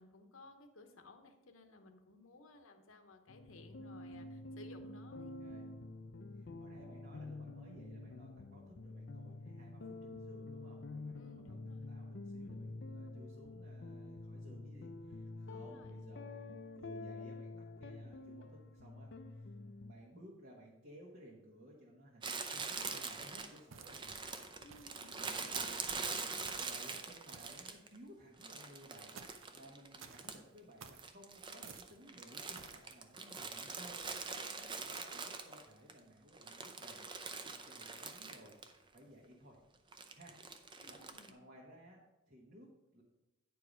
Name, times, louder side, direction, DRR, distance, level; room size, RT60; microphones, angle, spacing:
voice 1, 0.0-5.3 11.1-11.9 15.4-15.9 24.6-25.8 40.8-41.4, left 2 dB, 80° left, 6 dB, 0.9 m, -58 dB
sound 1, 3.3-19.9, left 2 dB, 55° left, 0.5 m, -48 dB
voice 2, 6.3-17.5 17.8-19.5 19.8-24.2 25.1-29.2 29.5-38.6 38.9-39.6 40.1-40.4 40.9-43.0, equal, 45° right, -3 dB, 1.2 m, -58 dB
Crumpling crinkling, 22.2-28.0 28.4-30.6 30.9-35.9 36.3-38.7 39.0-39.1 39.9-41.3, right 4 dB, 25° right, 0.5 m, -44 dB
sound 2, 23.7-24.2 24.7-25.0 25.6-25.9 26.4-26.8 27.3-27.7 29.1-29.5 30.0-30.3 30.8-31.1 31.6-32.0 32.5-32.8, right 6 dB, 75° right, 0.6 m, -54 dB
9.7 x 4.7 x 5.1 m, 0.98 s
head